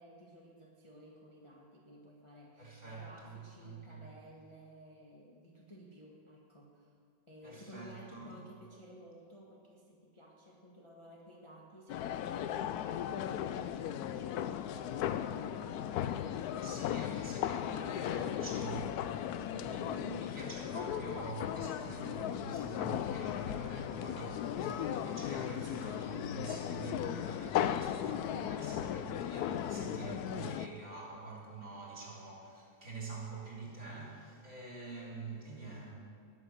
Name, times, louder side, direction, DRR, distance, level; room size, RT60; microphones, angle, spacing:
voice 1, 0.0-6.9 7.3-18.3 19.3-19.6, equal, 15° left, -4 dB, 1.3 m, -55 dB
voice 2, 2.6-4.1 7.4-8.3 16.6-18.9 19.4-35.9, right 3 dB, 35° right, -4 dB, 3.6 m, -46 dB
sound 1, 11.9-30.7, left 10 dB, 75° left, 0.9 m, -36 dB
19.5 x 7.4 x 6.4 m, 2.3 s
omnidirectional pair, 2.1 m